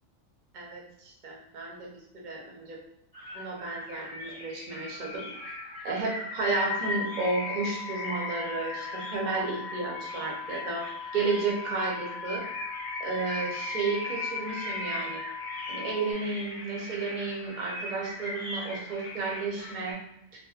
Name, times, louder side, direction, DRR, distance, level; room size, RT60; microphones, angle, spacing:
voice 1, 0.5-2.8 3.3-5.3 5.8-10.8 11.1-12.4 13.0-15.2 15.7-20.0, right 3 dB, 45° right, -2 dB, 0.7 m, -32 dB
sound 1, 3.1-19.9, left 2 dB, 45° left, 0.9 m, -38 dB
sound 2, 6.5-16.1, left 7 dB, 80° left, 1.0 m, -41 dB
2.8 x 2.3 x 2.3 m, 0.80 s
omnidirectional pair, 1.3 m